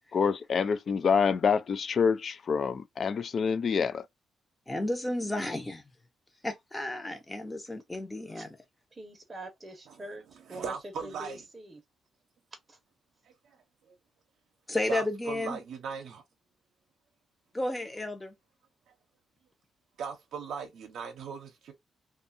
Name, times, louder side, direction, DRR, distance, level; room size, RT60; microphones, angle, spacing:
voice 1, 0.1-4.0, left 6 dB, 45° left, 0.3 m, -27 dB
voice 2, 4.7-5.8 6.4-8.6 14.7-15.6 17.5-18.3, left 2 dB, 15° left, 0.7 m, -32 dB
voice 3, 8.9-11.8 12.7-12.8, right 1 dB, 20° right, 0.7 m, -44 dB
voice 4, 10.5-11.4 13.2-13.6 13.9-14.0 14.9-16.2 20.0-21.7, right 6 dB, 75° right, 0.6 m, -39 dB
2.6 x 2.3 x 2.5 m
cardioid pair, 125°, 0 cm